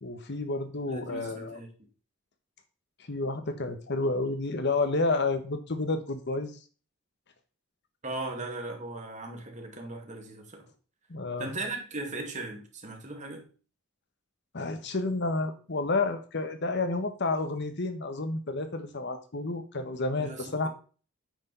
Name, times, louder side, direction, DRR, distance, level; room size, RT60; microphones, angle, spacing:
voice 1, 0.0-1.6 3.1-6.6 11.1-11.5 14.5-20.7, left 3 dB, 55° left, 8 dB, 1.1 m, -30 dB
voice 2, 0.9-1.7 8.0-10.7 11.4-13.5 20.2-20.7, right 2 dB, 35° right, 2 dB, 2.1 m, -38 dB
9.1 x 4.9 x 5.5 m, 0.38 s
head